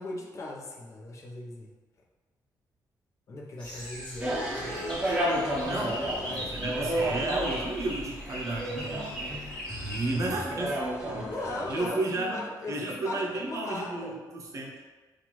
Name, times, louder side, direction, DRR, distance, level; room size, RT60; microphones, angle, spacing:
voice 1, 0.0-1.7 3.3-5.0 5.8-6.5 11.1-14.2, left 2 dB, 45° left, -1 dB, 0.7 m, -39 dB
sound 1, 3.6-10.1, equal, 15° left, 1.2 m, -40 dB
sound 2, 4.2-11.9, right 1 dB, 15° right, 0.8 m, -32 dB
voice 2, 5.6-6.0 6.3-9.3 9.8-11.3 11.7-12.4 12.7-14.7, right 2 dB, 45° right, -1 dB, 0.6 m, -33 dB
5.7 x 2.4 x 3.0 m, 1.3 s
cardioid pair, 130°, 7 cm